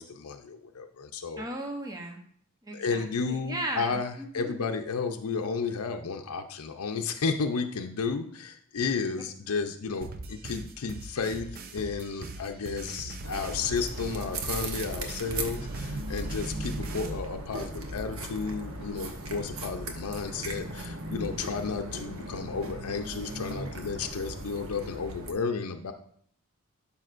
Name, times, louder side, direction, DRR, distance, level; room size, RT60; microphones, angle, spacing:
voice 1, 0.0-1.4 2.7-25.9, left 5 dB, 80° left, 5 dB, 0.5 m, -32 dB
voice 2, 1.4-2.2 2.6-4.6, right 1 dB, 15° right, 3 dB, 0.8 m, -36 dB
sound 1, 10.0-17.1, right 3 dB, 45° right, 0.5 m, -42 dB
sound 2, 13.2-25.3, right 1 dB, 70° right, 1.0 m, -37 dB
12.0 x 5.6 x 2.5 m, 0.62 s
head